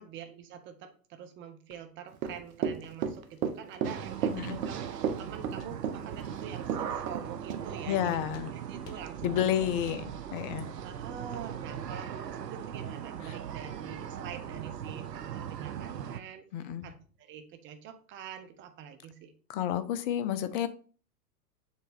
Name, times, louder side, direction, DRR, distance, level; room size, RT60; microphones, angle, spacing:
voice 1, 0.0-9.5 9.9-10.2 10.8-19.3, right 8 dB, 25° right, 7 dB, 0.9 m, -46 dB
sound 1, 1.7-1.8 2.2-2.4 2.8-3.0 3.4-3.5 3.9-4.0 4.4-4.6 5.1-5.2 5.5-5.7 6.2-6.3 6.7-6.8 7.2-7.4 7.8-7.9 8.3-8.5 8.8-9.0 9.3-9.5 9.8-10.0, left 4 dB, 75° left, 1.5 m, -52 dB
Run / Walk footsteps, 2.1-7.2 7.5-7.6, right 7 dB, 60° right, 1.1 m, -32 dB
sound 2, 3.8-16.2, right 9 dB, 80° right, 0.8 m, -39 dB
voice 2, 7.9-8.5 9.2-10.7 16.5-16.9 19.5-20.7, left 11 dB, 35° left, 13 dB, 0.6 m, -30 dB
7.2 x 3.9 x 4.1 m, 0.41 s
hypercardioid pair, 110°, 48 cm